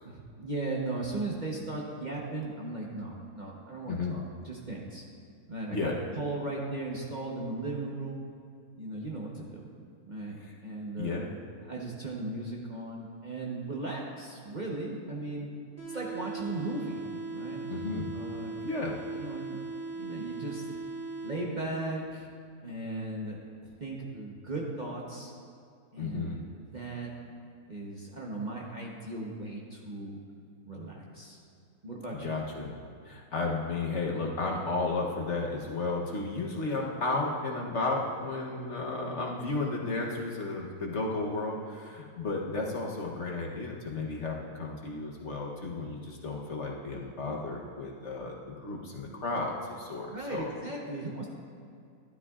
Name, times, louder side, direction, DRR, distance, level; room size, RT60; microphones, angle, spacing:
voice 1, 0.0-5.0 5.5-8.2 8.8-9.7 10.1-11.2 11.6-15.5 15.9-17.0 17.3-17.7 18.1-18.6 19.1-19.6 19.9-20.6 21.2-22.3 22.6-25.3 25.9-27.1 27.7-30.2 30.7-31.4 31.8-32.4 50.1-51.3, right 2 dB, 35° right, -3 dB, 0.9 m, -37 dB
sound 1, 15.8-21.7, right 3 dB, 10° right, 2.6 m, -39 dB
voice 2, 17.7-18.1 18.6-19.0 26.0-26.4 32.2-32.8 33.1-50.5, left 3 dB, 55° left, -1 dB, 1.1 m, -33 dB
12.5 x 12.0 x 2.4 m, 2.4 s
omnidirectional pair, 1.6 m